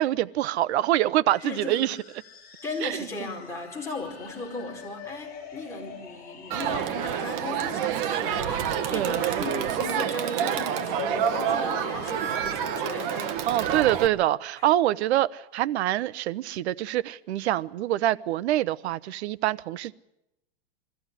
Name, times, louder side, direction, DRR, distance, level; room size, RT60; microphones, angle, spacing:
voice 1, 0.0-2.0 2.8-3.1 8.9-9.3 13.5-19.9, right 14 dB, 80° right, 0.8 m, -25 dB
sound 1, 1.3-13.7, left 6 dB, 30° left, 6.2 m, -42 dB
voice 2, 1.4-1.9 2.6-13.4 13.6-13.7 14.6-14.7, left 3 dB, 10° left, 4.8 m, -37 dB
Crowd, 6.5-14.1, right 9 dB, 50° right, 1.7 m, -28 dB
23.0 x 15.0 x 9.9 m
supercardioid pair, 155°, 32 cm